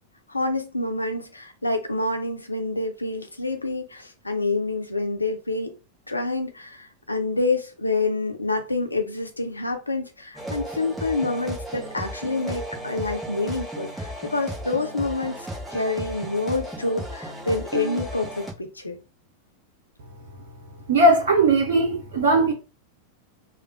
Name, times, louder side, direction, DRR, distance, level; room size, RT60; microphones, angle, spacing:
voice 1, 0.3-5.7 6.1-15.4 15.7-19.0, left 3 dB, 80° left, 0.7 m, -27 dB
sound 1, 10.3-18.5, right 1 dB, 5° right, 1.2 m, -35 dB
voice 2, 20.9-22.5, right 2 dB, 55° right, 0.7 m, -18 dB
3.4 x 2.1 x 2.7 m
figure-of-eight pair, 90°, 0 cm